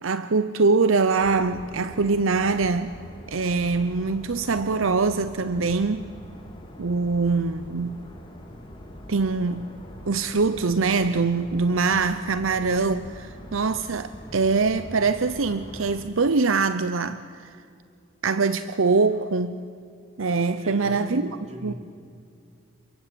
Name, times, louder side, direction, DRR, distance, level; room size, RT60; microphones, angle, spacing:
voice 1, 0.0-3.0 3.3-6.1 6.8-8.0 9.1-9.7 10.1-17.2 18.2-19.6 20.2-21.2 21.6-21.7, right 4 dB, 75° right, 0.8 m, -23 dB
sound 1, 1.2-16.1, equal, 25° left, 3.8 m, -43 dB
voice 2, 18.9-19.3 20.6-21.7, equal, 35° right, 3.2 m, -39 dB
28.5 x 23.0 x 8.4 m
head